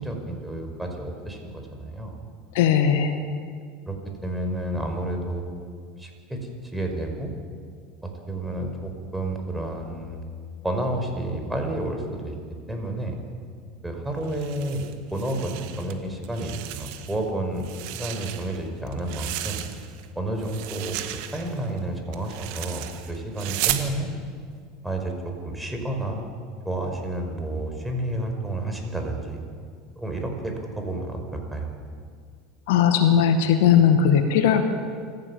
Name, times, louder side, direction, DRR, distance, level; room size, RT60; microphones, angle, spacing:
voice 1, 0.0-2.2 3.9-4.0 4.2-5.4 6.0-6.4 6.7-7.3 8.0-10.2 10.6-12.3 12.7-13.2 13.8-14.9 15.1-19.6 20.2-21.0 21.3-24.1 24.8-26.2 26.7-29.4 30.0-31.8, right 1 dB, 5° right, 3 dB, 5.2 m, -30 dB
voice 2, 2.5-3.1 32.7-34.6, left 8 dB, 70° left, 7 dB, 1.9 m, -18 dB
sound 1, 14.2-15.9 16.2-17.2 17.6-20.1 20.4-23.9, right 14 dB, 65° right, 1.8 m, -34 dB
26.0 x 14.5 x 7.3 m, 2.1 s
hypercardioid pair, 85°, 0 cm